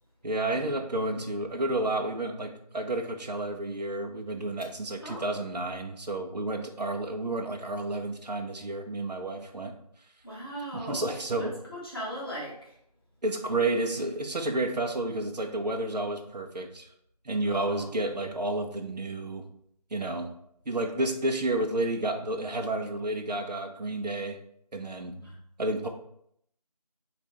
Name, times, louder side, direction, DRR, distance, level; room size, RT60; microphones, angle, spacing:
voice 1, 0.2-9.8 10.7-11.6 13.2-16.9 17.2-19.4 19.9-20.4 20.7-24.4 24.7-25.9, right 2 dB, 90° right, 5 dB, 0.7 m, -31 dB
voice 2, 10.2-12.8 17.4-17.9 25.2-25.4, equal, 35° left, -6 dB, 1.2 m, -39 dB
3.8 x 2.5 x 3.3 m, 0.71 s
figure-of-eight pair, 180°, 21 cm